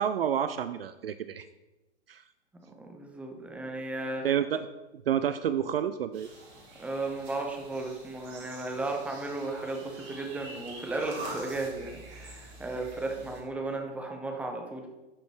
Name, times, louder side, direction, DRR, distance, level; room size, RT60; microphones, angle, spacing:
voice 1, 0.0-1.4 2.1-2.2 4.2-4.7 5.1-6.3, right 9 dB, 55° right, 12 dB, 0.4 m, -29 dB
voice 2, 2.8-4.2 6.8-14.9, right 2 dB, 5° right, 2 dB, 0.8 m, -35 dB
sound 1, 6.1-13.4, right 2 dB, 35° right, 2.6 m, -45 dB
11.0 x 5.1 x 3.1 m, 1.0 s
figure-of-eight pair, 115°, 34 cm